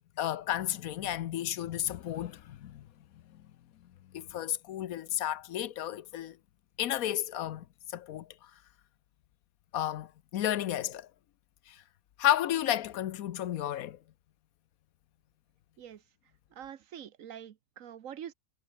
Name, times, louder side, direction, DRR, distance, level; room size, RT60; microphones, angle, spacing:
voice 1, 0.2-2.9 3.3-3.4 4.1-6.4 6.8-8.5 9.7-11.1 11.7-11.8 12.2-14.0, left 12 dB, 80° left, 1.2 m, -32 dB
voice 2, 16.5-18.3, right 9 dB, 70° right, 1.3 m, -45 dB
omnidirectional pair, 1.5 m